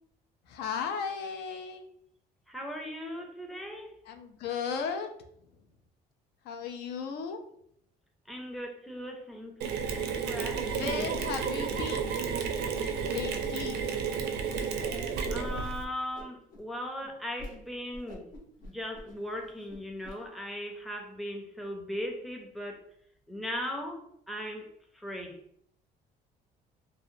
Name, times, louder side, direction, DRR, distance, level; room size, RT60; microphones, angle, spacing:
voice 1, 0.5-1.9 4.1-5.1 6.5-7.4 10.6-12.2 13.1-13.8, left 6 dB, 75° left, 6 dB, 0.4 m, -35 dB
voice 2, 2.5-3.9 8.3-9.7 10.2-11.1 15.3-18.2 18.6-22.8 23.3-24.7 24.9-25.4, equal, ahead, 2 dB, 0.4 m, -38 dB
Mechanisms, 9.6-15.8, right 6 dB, 75° right, 0.4 m, -32 dB
Whoosh swoosh swish, 14.5-15.0 15.2-15.8 16.1-16.6 17.0-17.1 17.4-17.6 17.9-20.1, left 1 dB, 60° left, 0.8 m, -45 dB
2.7 x 2.0 x 2.6 m, 0.69 s
cardioid pair, 110°, 17 cm